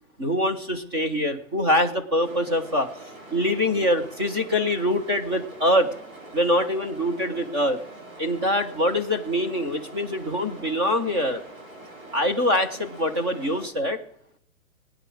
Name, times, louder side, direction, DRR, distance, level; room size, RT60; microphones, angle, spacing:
voice 1, 0.2-2.9 3.3-5.9 6.3-7.8 8.2-11.4 12.1-14.0, left 1 dB, 20° right, 5 dB, 0.9 m, -24 dB
sound 1, 2.2-13.7, right 2 dB, 70° right, 6.9 m, -44 dB
20.0 x 9.7 x 6.4 m, 0.72 s
hypercardioid pair, 175°, 42 cm